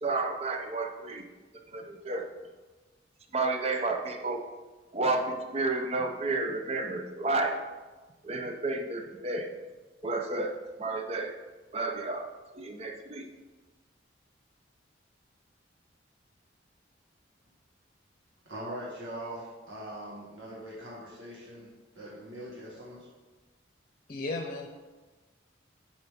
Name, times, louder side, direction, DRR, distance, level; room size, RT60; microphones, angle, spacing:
voice 1, 0.0-1.3 1.7-2.3 3.3-4.4 4.9-7.6 8.2-9.5 10.0-11.3 11.7-12.3 12.5-13.3, right 2 dB, 35° right, 4 dB, 0.7 m, -31 dB
voice 2, 18.4-23.1, right 1 dB, 70° right, -6 dB, 1.7 m, -42 dB
voice 3, 24.1-24.7, left 2 dB, 40° left, 3 dB, 0.8 m, -34 dB
9.5 x 5.1 x 3.6 m, 1.3 s
head